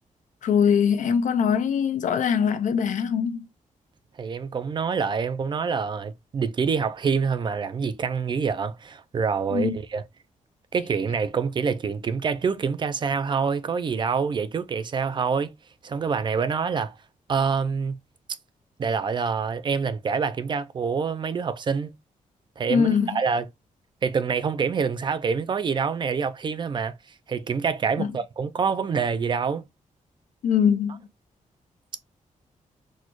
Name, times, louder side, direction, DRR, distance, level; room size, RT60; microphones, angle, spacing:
voice 1, 0.4-3.4 9.5-9.8 22.7-23.2 28.0-28.1 30.4-31.0, left 7 dB, 65° left, 0.5 m, -22 dB
voice 2, 4.2-10.0 10.7-15.5 15.8-17.0 17.3-18.0 18.8-21.9 22.6-23.4 24.0-27.0 27.3-29.6, right 5 dB, 35° right, 0.4 m, -26 dB
4.1 x 2.3 x 3.0 m
wide cardioid pair, 165°, 14 cm